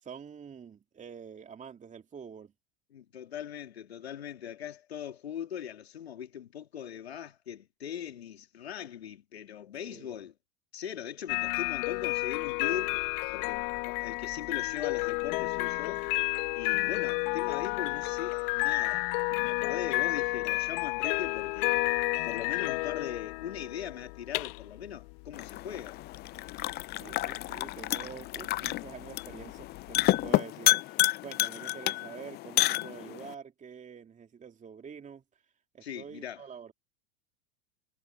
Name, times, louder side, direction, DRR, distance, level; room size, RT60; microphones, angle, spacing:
voice 1, 0.0-2.5 9.9-10.2 27.0-35.2 35.7-36.7, right 7 dB, 25° right, 2.8 m, -47 dB
voice 2, 2.9-10.3 10.7-13.0 13.3-16.0 16.5-21.8 22.2-26.0 35.8-36.4, left 9 dB, 85° left, 2.7 m, -40 dB
sound 1, 11.3-30.3, left 28 dB, 55° left, 1.3 m, -31 dB
sound 2, 25.3-33.3, left 17 dB, 35° left, 0.4 m, -30 dB
hypercardioid pair, 90°, 31 cm